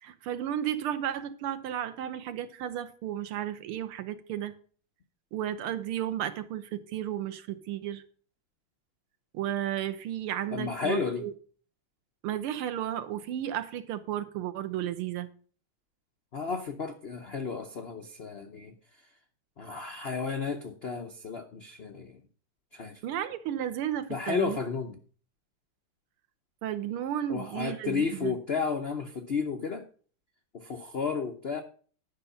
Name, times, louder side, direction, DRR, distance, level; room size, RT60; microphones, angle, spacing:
voice 1, 0.0-4.5 5.3-8.0 9.3-11.3 12.2-15.3 23.0-24.6 26.6-28.4, right 11 dB, 85° right, 11 dB, 1.8 m, -33 dB
voice 2, 10.5-11.3 16.3-18.7 19.6-22.2 22.7-23.0 24.1-25.0 27.3-29.8 30.5-31.6, left 5 dB, 85° left, 5 dB, 0.5 m, -32 dB
11.0 x 5.7 x 5.5 m, 0.43 s
omnidirectional pair, 2.4 m